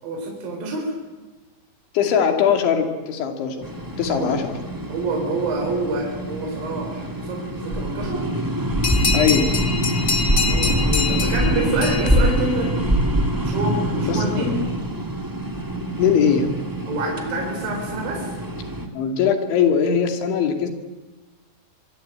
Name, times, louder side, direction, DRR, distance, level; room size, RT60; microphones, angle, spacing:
voice 1, 0.0-1.0 4.2-4.3 4.9-8.3 10.4-12.8 13.4-14.6 16.9-18.3, right 2 dB, 50° right, 1 dB, 5.7 m, -27 dB
voice 2, 1.9-3.7 4.0-4.5 9.1-9.5 14.0-14.5 16.0-16.6 18.9-20.7, left 7 dB, 90° left, 5 dB, 5.0 m, -20 dB
sound 1, 3.6-18.9, equal, 10° right, 1.0 m, -24 dB
sound 2, 8.8-13.1, left 4 dB, 70° left, 0.6 m, -26 dB
24.5 x 24.5 x 8.9 m, 1.2 s
omnidirectional pair, 5.1 m